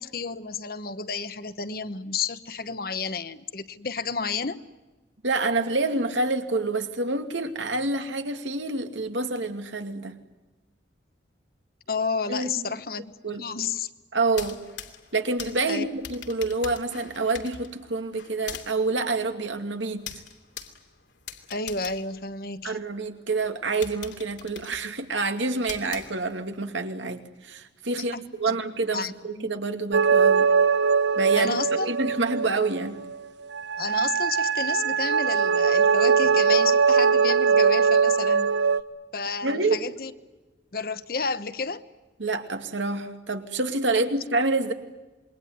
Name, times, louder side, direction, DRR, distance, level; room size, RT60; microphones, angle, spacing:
voice 1, 0.0-4.6 11.9-13.1 13.4-13.9 15.7-15.9 21.5-22.8 28.0-28.6 28.9-29.5 31.4-31.9 33.8-38.5 39.1-40.1 40.7-41.8, left 5 dB, 50° left, 12 dB, 1.1 m, -31 dB
voice 2, 5.2-10.2 12.3-12.6 13.2-13.4 14.1-14.6 15.1-20.1 22.6-30.5 31.2-33.0 39.4-39.8 42.2-44.7, right 3 dB, 90° right, 6 dB, 2.5 m, -27 dB
sound 1, 14.2-23.0 23.4-23.5 23.8-26.6, left 7 dB, 80° left, 2.7 m, -43 dB
sound 2, 29.9-33.2 33.5-38.8, right 6 dB, 70° right, 1.0 m, -21 dB
27.0 x 22.0 x 9.5 m, 1.2 s
head